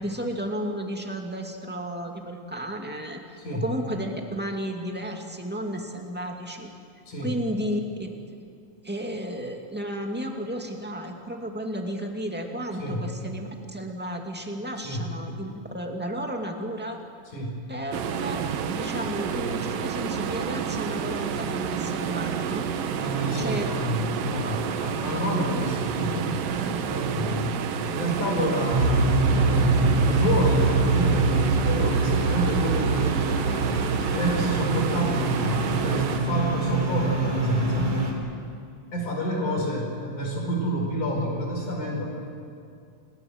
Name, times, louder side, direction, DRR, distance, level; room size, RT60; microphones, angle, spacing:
voice 1, 0.0-6.7 7.2-8.1 8.8-17.0 17.7-22.7 23.4-23.7 27.2-27.4 39.4-39.6, equal, 5° right, 2 dB, 1.6 m, -33 dB
voice 2, 3.4-3.7 7.1-7.4 12.8-13.1 14.8-15.1 17.3-17.7 23.0-27.6 27.9-37.9 38.9-42.1, equal, 65° left, -1 dB, 6.4 m, -29 dB
sound 1, 17.9-36.2, right 7 dB, 85° right, 2.9 m, -30 dB
sound 2, 28.7-38.1, right 3 dB, 55° right, 4.3 m, -24 dB
29.5 x 20.0 x 8.0 m, 2.4 s
omnidirectional pair, 3.8 m